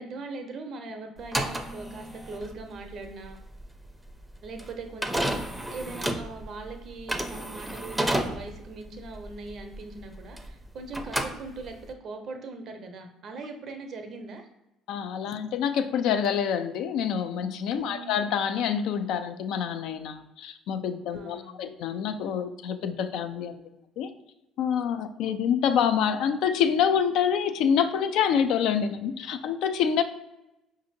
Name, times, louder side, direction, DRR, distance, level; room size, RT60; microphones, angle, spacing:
voice 1, 0.0-3.4 4.4-14.5 17.8-18.1 21.1-21.6, right 3 dB, 55° right, 5 dB, 0.6 m, -40 dB
sound 1, 1.2-10.6 10.9-11.9, right 1 dB, 10° right, 0.5 m, -32 dB
voice 2, 14.9-23.6 24.0-24.1 24.6-30.0, left 8 dB, 70° left, 9 dB, 0.3 m, -26 dB
4.9 x 2.6 x 2.6 m, 0.91 s
hypercardioid pair, 60°, 0 cm